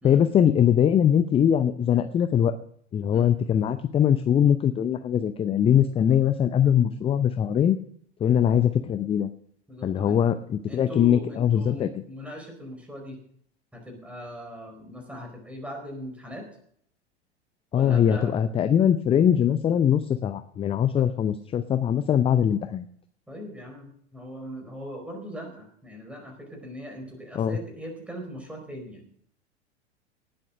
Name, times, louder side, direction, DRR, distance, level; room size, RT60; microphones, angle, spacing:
voice 1, 0.0-2.5 2.9-7.8 8.2-9.3 9.8-11.9 17.7-22.8 27.4-27.6, left 9 dB, 15° left, 12 dB, 0.6 m, -22 dB
voice 2, 9.7-10.2 10.7-13.2 13.7-16.5 17.7-18.3 20.9-21.0 23.3-29.2, equal, 5° right, 2 dB, 4.4 m, -40 dB
18.5 x 7.9 x 6.3 m, 0.64 s
figure-of-eight pair, 85°, 34 cm